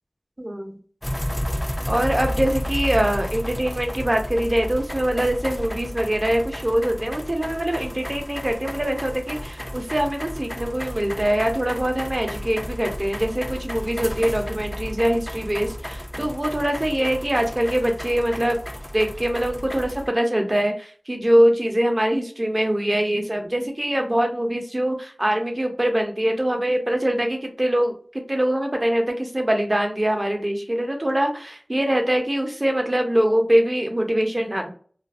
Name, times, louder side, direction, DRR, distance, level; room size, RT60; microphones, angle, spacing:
voice 1, 0.4-0.8 1.9-18.6 18.9-34.7, right 1 dB, 30° right, 3 dB, 0.7 m, -23 dB
sound 1, 1.0-20.1, equal, 15° left, 0.3 m, -32 dB
2.5 x 2.4 x 2.4 m, 0.43 s
wide cardioid pair, 50°, 0 cm